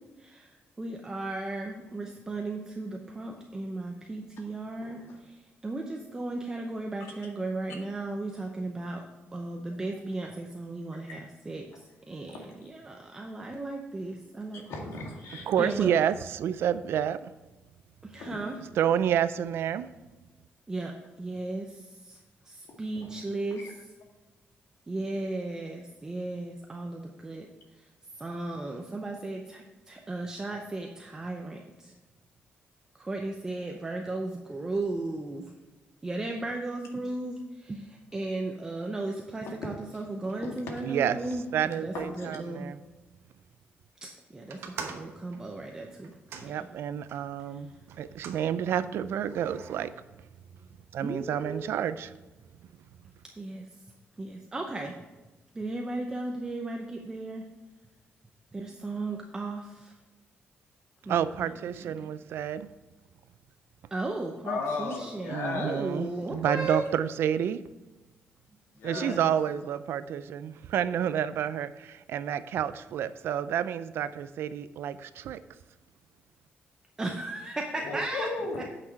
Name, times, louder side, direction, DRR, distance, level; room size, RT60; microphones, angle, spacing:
voice 1, 0.2-9.0 9.3-14.6 15.2-15.9 18.0-18.6 20.7-22.2 22.4-23.8 24.9-27.9 28.2-31.9 33.0-35.5 36.0-42.7 44.0-46.5 47.5-47.6 51.0-51.7 53.4-53.7 54.2-54.9 55.5-57.4 58.5-60.0 61.0-62.1 63.9-66.8 68.9-69.2 77.0-78.3, right 2 dB, 15° right, 0.6 m, -36 dB
voice 2, 4.8-5.2 12.3-12.5 14.7-15.4 18.2-18.4 23.0-23.1 41.9-42.3 64.5-65.9 68.8-69.3 77.9-78.6, left 3 dB, 85° left, 1.9 m, -35 dB
voice 3, 15.5-17.3 18.8-19.9 40.8-41.2 41.5-42.8 46.4-47.7 48.0-49.9 50.9-52.1 61.1-62.7 65.3-67.6 68.8-75.4, right 9 dB, 70° right, 0.4 m, -29 dB
sound 1, 44.5-47.3 47.9-48.4 49.2-49.9, right 6 dB, 90° right, 1.1 m, -44 dB
8.9 x 5.9 x 4.6 m
cardioid pair, 170°, 4 cm